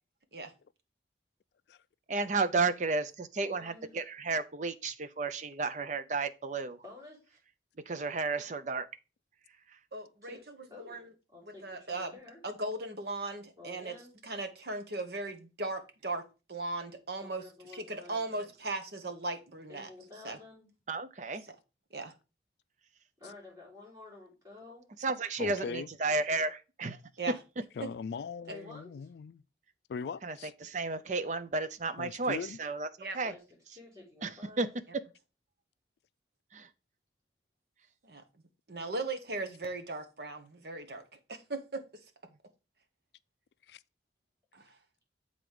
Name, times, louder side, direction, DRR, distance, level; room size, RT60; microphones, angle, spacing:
voice 1, 2.1-6.8 7.9-8.9 20.9-21.4 25.0-27.0 30.2-30.4 30.6-32.9 33.1-33.3 34.2-34.3 34.6-34.7 36.5-36.7, right 3 dB, 40° right, 0.5 m, -32 dB
voice 2, 3.4-3.9 6.8-7.4 10.2-10.4 10.7-12.4 13.6-14.1 17.2-18.5 19.7-20.7 23.2-24.9 28.4-29.1 33.2-33.4 33.7-34.7, left 3 dB, 20° right, 4.3 m, -51 dB
voice 3, 9.9-10.4 10.8-11.1 11.6-12.1 12.4-13.9 14.2-16.2 16.5-17.4 17.7-19.9 20.2-20.4 21.4-21.5 21.9-22.1 27.2-27.3 33.0-33.2 38.0-38.2 38.7-41.8 44.5-44.7, right 2 dB, 60° right, 1.1 m, -37 dB
voice 4, 25.4-25.9 27.8-29.4 29.9-30.5 32.0-32.6 43.7-43.8, left 5 dB, 65° left, 0.3 m, -40 dB
7.7 x 4.0 x 4.9 m
head